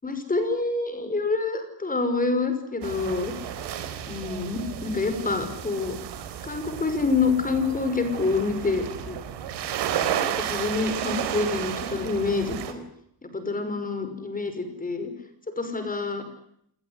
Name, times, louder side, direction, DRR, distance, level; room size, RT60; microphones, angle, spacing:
voice 1, 0.0-3.3 4.1-6.0 6.4-9.2 10.2-12.8 13.2-15.1 15.6-16.2, left 3 dB, 20° left, 9 dB, 5.6 m, -27 dB
sound 1, 2.8-12.7, right 9 dB, 85° right, 4.0 m, -32 dB
27.0 x 19.0 x 9.9 m, 0.72 s
cardioid pair, 130°, 41 cm